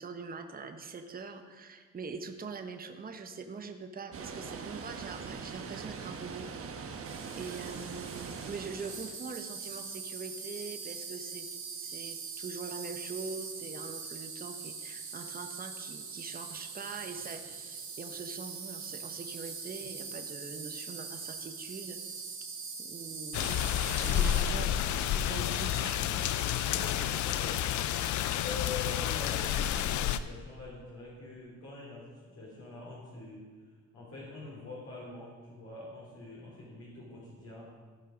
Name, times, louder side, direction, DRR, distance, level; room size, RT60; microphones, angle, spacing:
voice 1, 0.0-6.5 7.4-11.5 11.7-22.0 22.8-24.7 25.1-26.1, right 4 dB, 30° right, 7 dB, 1.0 m, -43 dB
Water, 4.1-9.2, right 5 dB, 50° right, 1.1 m, -42 dB
Insect, 7.0-24.4, right 5 dB, 70° right, 3.2 m, -42 dB
sound 1, 23.3-30.2, left 10 dB, 75° left, 0.6 m, -30 dB
voice 2, 24.0-25.1 26.6-27.9 28.4-33.4 33.9-37.6, left 3 dB, 55° left, -6 dB, 3.2 m, -45 dB
16.0 x 5.5 x 5.1 m, 1.5 s
cardioid pair, 90°, 30 cm